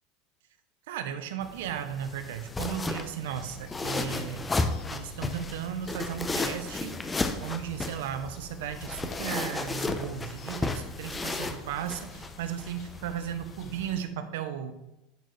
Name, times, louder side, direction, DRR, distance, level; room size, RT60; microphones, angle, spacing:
voice 1, 0.9-4.5 4.9-14.7, right 9 dB, 75° right, 10 dB, 0.6 m, -35 dB
sound 1, 1.4-14.0, left 3 dB, 20° left, 0.6 m, -34 dB
sound 2, 3.3-13.9, left 2 dB, 55° left, 1.1 m, -47 dB
10.5 x 4.2 x 3.1 m, 0.93 s
hypercardioid pair, 95°, 0 cm